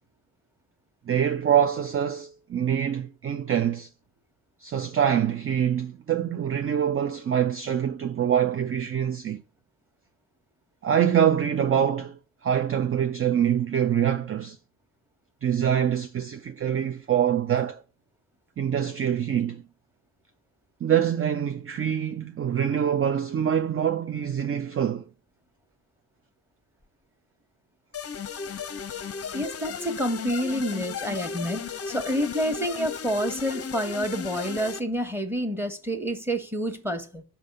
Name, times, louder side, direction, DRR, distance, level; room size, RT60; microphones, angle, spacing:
voice 1, 1.1-3.9 4.6-9.4 10.8-14.6 15.4-17.8 18.6-19.6 20.8-25.0, right 9 dB, 30° right, 0.5 m, -25 dB
sound 1, 27.9-34.8, left 6 dB, 30° left, 0.7 m, -35 dB
voice 2, 29.3-37.2, equal, 5° right, 1.4 m, -28 dB
5.6 x 3.5 x 5.5 m
hypercardioid pair, 45°, 48 cm